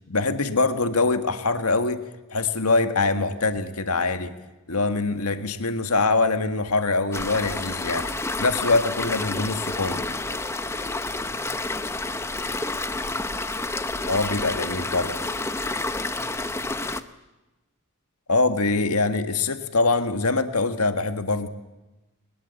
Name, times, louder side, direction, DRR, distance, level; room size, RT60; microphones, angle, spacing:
voice 1, 0.1-2.0 2.3-4.3 4.7-10.0 14.0-15.1 18.3-21.5, left 3 dB, 85° left, 9 dB, 1.8 m, -23 dB
sound 1, 7.1-17.0, left 2 dB, 10° left, 0.8 m, -29 dB
voice 2, 8.6-9.4 9.7-13.3 14.1-17.0, right 1 dB, 50° right, -4 dB, 6.6 m, -49 dB
22.5 x 20.5 x 8.3 m, 1.1 s
head